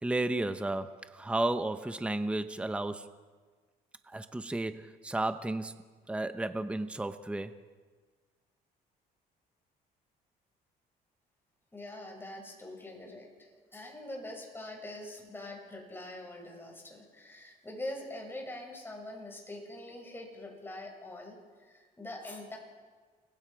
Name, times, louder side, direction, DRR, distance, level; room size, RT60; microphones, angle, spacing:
voice 1, 0.0-3.1 4.1-5.8 6.1-7.5, right 2 dB, 5° right, 10 dB, 0.9 m, -33 dB
voice 2, 11.7-22.6, left 1 dB, 15° left, 0 dB, 7.0 m, -44 dB
29.5 x 21.5 x 5.1 m, 1.5 s
cardioid pair, 110°, 17 cm